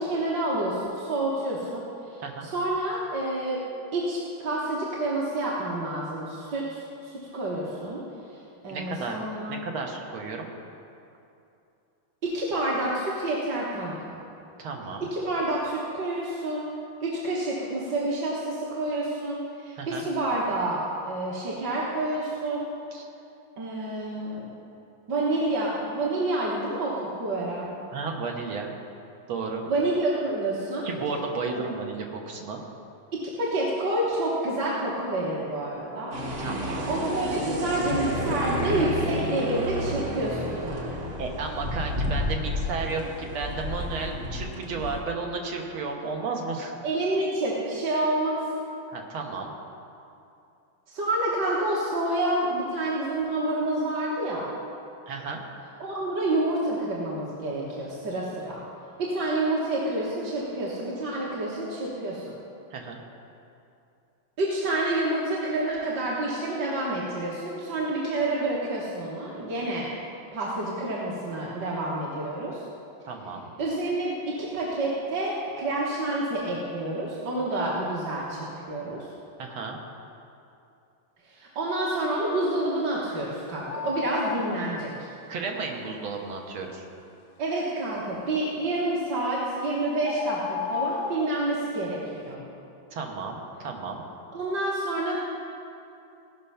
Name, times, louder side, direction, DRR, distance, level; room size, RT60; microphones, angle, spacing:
voice 1, 0.0-3.6 3.9-8.0 8.3-8.4 8.6-9.6 12.2-14.0 15.1-16.7 17.0-22.7 23.6-24.5 25.1-27.8 29.7-30.9 31.5-31.6 33.4-36.1 36.9-41.1 46.8-48.4 50.9-54.5 55.8-58.6 59.0-62.3 64.4-69.9 70.3-72.6 73.6-79.1 81.2-85.1 87.4-92.4 94.3-95.2, right 1 dB, 60° right, -6 dB, 1.8 m, -28 dB
voice 2, 8.7-9.2 9.5-10.5 14.6-15.1 19.8-20.0 22.9-23.1 27.9-28.7 29.3-29.6 30.8-32.6 36.4-36.9 41.2-46.7 48.9-49.5 55.1-55.4 62.7-63.0 73.1-73.5 79.4-79.8 85.3-86.9 92.9-94.0, right 4 dB, 85° right, 1 dB, 2.0 m, -33 dB
sound 1, 36.1-45.0, equal, 40° right, 1.1 m, -31 dB
sound 2, 83.7-84.6 89.2-89.3 90.0-91.3, left 6 dB, 80° left, 1.4 m, -32 dB
17.0 x 5.7 x 5.6 m, 2.7 s
omnidirectional pair, 2.2 m